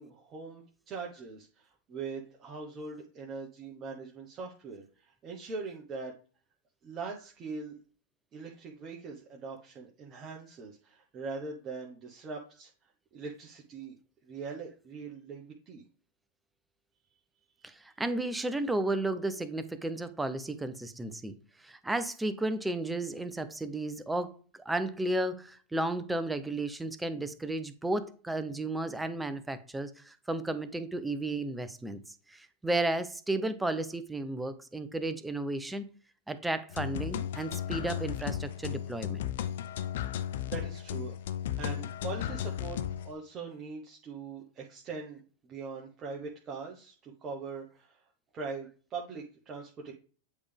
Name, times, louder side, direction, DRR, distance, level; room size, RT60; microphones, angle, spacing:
voice 1, 0.0-6.1 6.8-7.8 8.3-14.0 14.2-15.8 40.5-41.1 41.6-48.1 48.3-49.9, right 4 dB, 35° right, -1 dB, 1.1 m, -42 dB
voice 2, 17.6-21.3 21.6-24.4 24.6-32.0 32.3-35.8 36.3-39.3, right 2 dB, 10° right, 11 dB, 0.7 m, -33 dB
sound 1, 36.7-43.1, left 10 dB, 70° left, 0.5 m, -35 dB
8.1 x 3.5 x 3.5 m, 0.40 s
hypercardioid pair, 105°, 0 cm